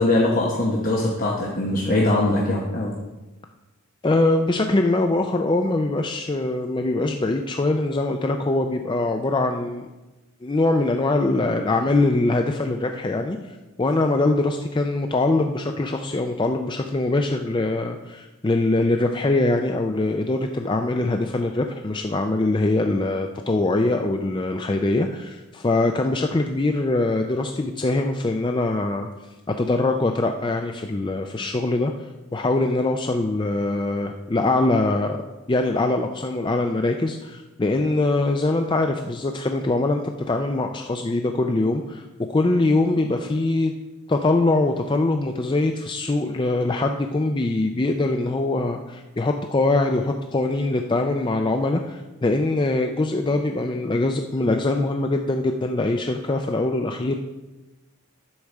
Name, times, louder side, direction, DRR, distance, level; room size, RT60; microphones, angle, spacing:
voice 1, 0.0-2.9, left 2 dB, 40° left, -2 dB, 1.0 m, -21 dB
voice 2, 4.0-9.9 10.4-29.1 29.6-35.2 35.5-43.7 44.1-57.2, left 2 dB, 20° left, 4 dB, 0.4 m, -23 dB
10.5 x 4.8 x 6.5 m, 1.1 s
head